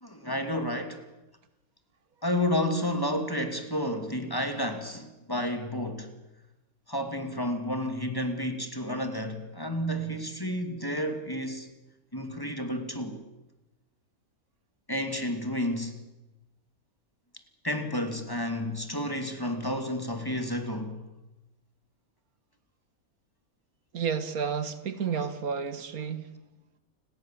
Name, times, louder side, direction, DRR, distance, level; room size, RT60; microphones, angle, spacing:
voice 1, 0.0-1.0 2.2-6.1 6.9-11.7 12.1-13.2 14.9-16.0 17.6-21.0, left 1 dB, 15° left, 2.5 m, -31 dB
voice 2, 23.9-26.3, right 6 dB, 85° right, 2.0 m, -31 dB
29.5 x 19.5 x 7.6 m
omnidirectional pair, 1.5 m